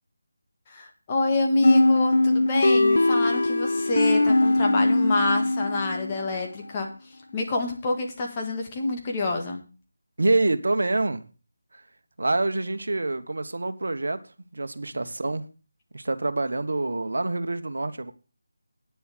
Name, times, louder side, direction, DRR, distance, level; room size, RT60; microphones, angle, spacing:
voice 1, 0.7-9.6 14.9-15.0, left 2 dB, 20° left, 1.9 m, -27 dB
sound 1, 1.6-6.3, left 2 dB, 80° left, 0.9 m, -21 dB
voice 2, 10.2-11.3 11.7-11.8 12.2-14.2 14.5-15.4 15.9-18.1, right 2 dB, 75° right, 1.2 m, -26 dB
9.6 x 6.9 x 6.6 m
figure-of-eight pair, 170°, 0 cm